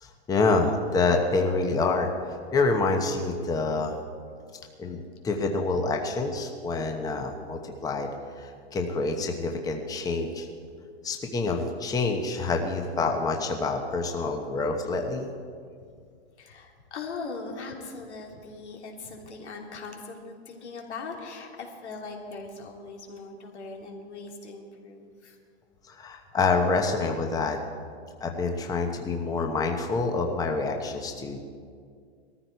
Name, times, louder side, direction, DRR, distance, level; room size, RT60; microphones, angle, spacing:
voice 1, 0.0-2.1 2.5-4.0 4.8-8.1 8.4-10.5 11.0-15.3 25.9-27.6 28.2-31.4, left 3 dB, 10° left, 3 dB, 1.0 m, -27 dB
voice 2, 16.4-25.4, left 4 dB, 90° left, 1 dB, 3.0 m, -40 dB
19.5 x 14.0 x 4.6 m, 2.2 s
hypercardioid pair, 135°, 33 cm